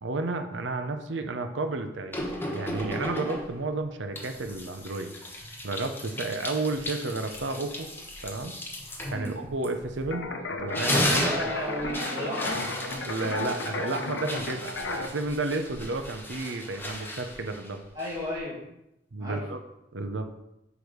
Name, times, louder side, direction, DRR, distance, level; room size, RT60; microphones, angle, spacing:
voice 1, 0.0-5.1 5.6-7.9 8.2-8.6 9.1-11.3 13.1-17.8 19.1-19.6 19.9-20.3, right 3 dB, 70° right, 7 dB, 0.8 m, -32 dB
sound 1, 2.1-3.7 4.2-10.2 10.5-18.4, left 1 dB, 10° left, 1.2 m, -34 dB
sound 2, 10.1-15.1, left 3 dB, 70° left, 0.9 m, -34 dB
voice 2, 11.2-12.7 17.9-18.6 19.2-19.4, equal, 20° right, -7 dB, 1.4 m, -34 dB
6.3 x 5.0 x 5.1 m, 0.87 s
head